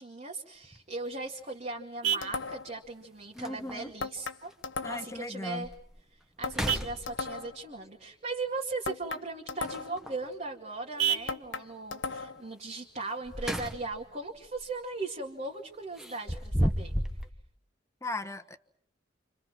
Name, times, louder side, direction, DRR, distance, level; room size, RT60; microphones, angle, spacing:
voice 1, 0.0-4.5 4.9-5.7 6.1-17.0, right 3 dB, 35° right, -1 dB, 2.3 m, -38 dB
sound 1, 0.6-0.8 2.5-2.6 3.0-3.1 3.4-3.9 4.5-4.6 5.1-5.2 5.6-6.0 6.4-7.5 9.6-10.3 13.0-14.1 14.4-14.7 16.0-17.3, equal, 5° right, 1.4 m, -33 dB
Vehicle horn car horn honking, 0.8-13.8, right 8 dB, 85° right, 2.2 m, -40 dB
sound 2, 2.2-2.8 4.0-5.2 6.4-7.6 8.8-10.1 11.3-12.5, left 4 dB, 70° left, 1.0 m, -37 dB
voice 2, 3.3-3.9 4.8-5.7 18.0-18.6, left 2 dB, 15° left, 7 dB, 1.2 m, -37 dB
29.5 x 26.5 x 6.1 m, 0.66 s
head